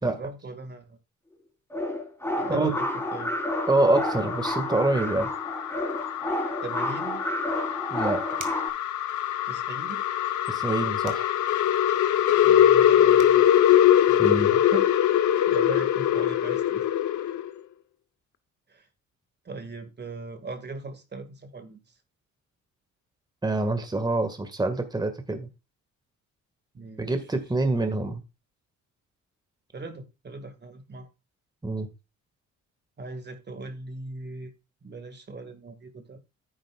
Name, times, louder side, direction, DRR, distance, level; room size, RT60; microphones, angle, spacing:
voice 1, 0.0-1.0 2.4-3.3 6.6-7.2 9.5-10.0 12.4-13.5 14.1-15.0 15.5-16.9 17.2-17.3 18.7-18.9 19.5-21.8 26.7-27.1 29.7-31.1 33.0-34.5 34.8-36.2, right 3 dB, 35° right, 2.0 m, -39 dB
sound 1, 1.7-8.7, left 1 dB, 10° left, 4.0 m, -31 dB
sound 2, 2.4-17.5, left 11 dB, 75° left, 1.1 m, -23 dB
voice 2, 3.7-5.3 7.9-8.2 10.5-11.3 14.2-14.5 23.4-25.5 27.0-28.2 31.6-31.9, right 2 dB, 15° right, 1.8 m, -26 dB
sound 3, 8.4-8.8 11.0-11.3 12.8-12.9 13.2-13.4, right 9 dB, 85° right, 2.0 m, -42 dB
10.5 x 9.5 x 2.4 m
cardioid pair, 90°, 30 cm